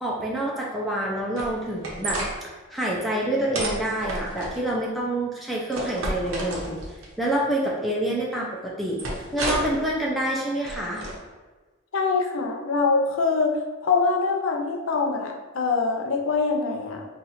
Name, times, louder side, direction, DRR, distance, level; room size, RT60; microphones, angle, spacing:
voice 1, 0.0-6.8 7.2-9.0 9.3-11.0, right 1 dB, ahead, -4 dB, 0.4 m, -27 dB
sound 1, 1.4-2.3 3.5-4.6 5.7-7.1 9.0-9.8 10.6-11.1, right 1 dB, 65° right, 0.8 m, -30 dB
voice 2, 11.9-17.1, left 4 dB, 65° left, 2 dB, 0.5 m, -24 dB
2.9 x 2.4 x 4.0 m, 1.3 s
head